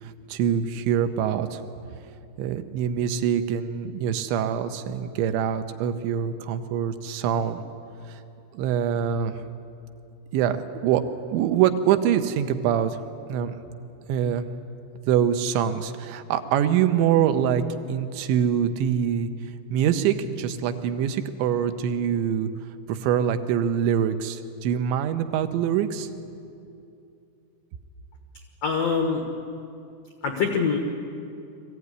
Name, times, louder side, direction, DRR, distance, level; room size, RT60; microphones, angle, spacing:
voice 1, 0.0-1.6 2.4-7.6 8.1-8.2 8.5-9.4 10.3-11.0 11.3-13.0 13.3-13.8 14.1-14.5 15.1-17.6 17.9-19.3 19.7-22.5 22.9-26.1, right 9 dB, 85° right, 8 dB, 3.2 m, -24 dB
voice 2, 28.6-29.3 30.2-30.8, left 5 dB, 90° left, 4 dB, 1.4 m, -24 dB
22.0 x 15.0 x 9.7 m, 2.6 s
omnidirectional pair, 5.2 m